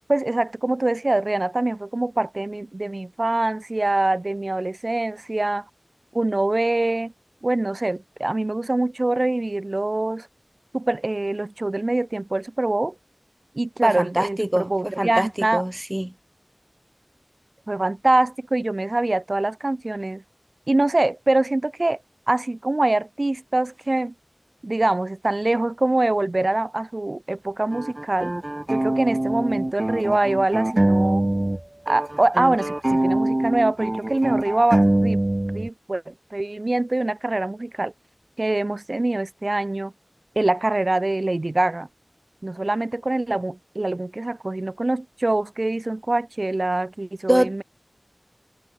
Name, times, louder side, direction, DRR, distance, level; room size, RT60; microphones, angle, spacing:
voice 1, 0.1-5.6 6.1-7.1 7.4-10.3 10.7-12.9 13.6-15.6 17.7-20.2 20.7-22.0 22.3-24.1 24.6-28.3 28.7-31.2 31.9-35.2 35.5-37.9 38.4-39.9 40.4-41.9 42.4-47.6, right 2 dB, 65° right, 1.9 m, -24 dB
voice 2, 13.8-15.3 15.5-16.1 47.3-47.6, right 1 dB, 20° right, 1.6 m, -24 dB
sound 1, 27.7-31.6 31.9-35.7, right 1 dB, 40° right, 0.6 m, -23 dB
wide cardioid pair, 45°, 0 cm